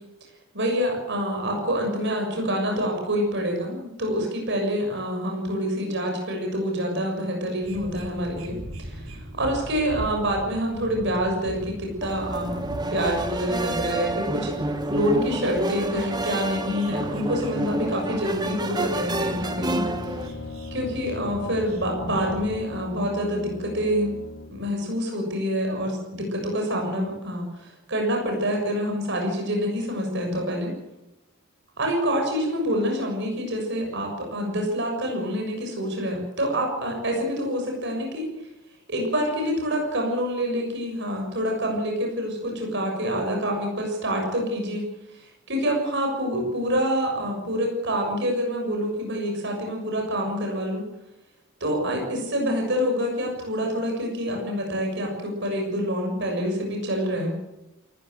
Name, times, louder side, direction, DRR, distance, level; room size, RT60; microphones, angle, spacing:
voice 1, 0.5-8.6 8.8-9.1 9.3-12.6 12.8-20.1 20.7-24.1 24.5-30.7 31.8-38.3 38.9-44.9 45.1-50.8 51.6-57.3, equal, 60° right, 2 dB, 6.9 m, -27 dB
sound 1, 7.6-22.6, equal, 85° right, 4.6 m, -40 dB
sound 2, 12.0-20.3, right 1 dB, 20° right, 1.6 m, -29 dB
Brass instrument, 19.0-24.7, left 3 dB, 70° left, 1.5 m, -39 dB
28.5 x 15.5 x 8.0 m, 0.96 s
head